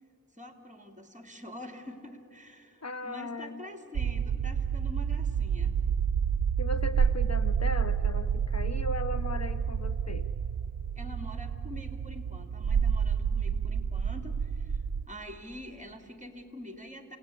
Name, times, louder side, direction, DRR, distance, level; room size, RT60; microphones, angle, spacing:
voice 1, 0.3-5.8 11.0-17.2, left 1 dB, 20° right, 6 dB, 2.5 m, -46 dB
voice 2, 2.8-3.6 6.6-10.3, left 2 dB, 45° left, 12 dB, 0.7 m, -37 dB
sound 1, 3.9-15.1, right 7 dB, 65° right, 0.6 m, -29 dB
29.0 x 18.0 x 8.4 m, 2.7 s
wide cardioid pair, 55°, 37 cm